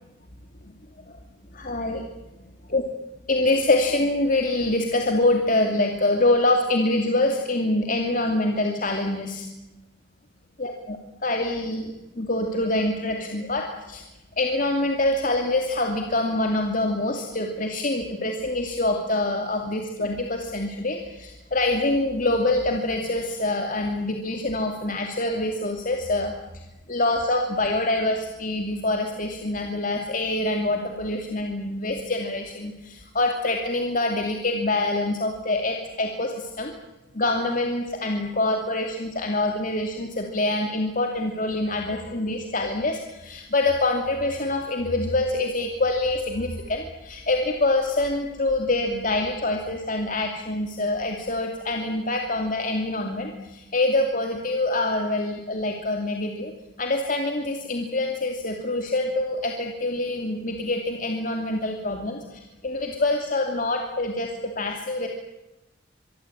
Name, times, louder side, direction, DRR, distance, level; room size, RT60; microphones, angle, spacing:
voice 1, 1.5-2.1 2.7-2.8 3.3-9.5 10.6-14.0 14.4-26.3 26.9-36.7 37.1-56.5 56.8-64.3 64.6-65.1, left 2 dB, 45° left, 3 dB, 2.8 m, -25 dB
25.0 x 23.5 x 9.0 m, 0.98 s
head